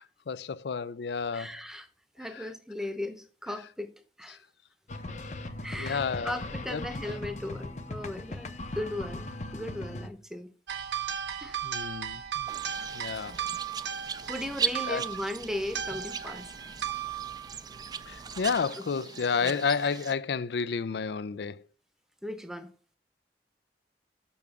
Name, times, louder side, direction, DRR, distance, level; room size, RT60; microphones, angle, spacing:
voice 1, 0.0-1.5 5.8-6.3 6.7-6.8 11.6-12.5 12.9-13.4 14.9-15.0 18.1-21.6, left 5 dB, 75° left, 0.4 m, -31 dB
voice 2, 1.3-1.9 2.2-4.4 5.6-10.5 11.4-11.6 14.3-16.5 19.4-19.6 22.2-22.7, left 1 dB, 5° right, 0.8 m, -37 dB
sound 1, 4.9-10.1, left 2 dB, 40° left, 0.7 m, -38 dB
sound 2, 10.7-18.6, right 9 dB, 85° right, 0.9 m, -37 dB
sound 3, 12.5-20.2, right 6 dB, 20° right, 0.3 m, -38 dB
7.1 x 6.0 x 6.8 m
head